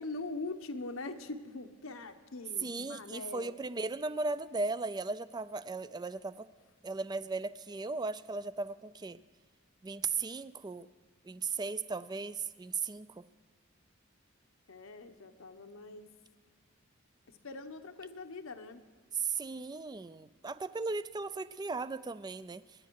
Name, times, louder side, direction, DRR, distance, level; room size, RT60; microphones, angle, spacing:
voice 1, 0.0-3.6 14.7-16.1 17.4-18.8, left 3 dB, 80° left, 7 dB, 1.0 m, -42 dB
voice 2, 2.6-6.5 6.8-9.2 9.8-10.9 11.2-13.2 19.1-22.6, right 4 dB, 20° right, 15 dB, 0.4 m, -37 dB
26.0 x 10.5 x 4.7 m, 1.5 s
head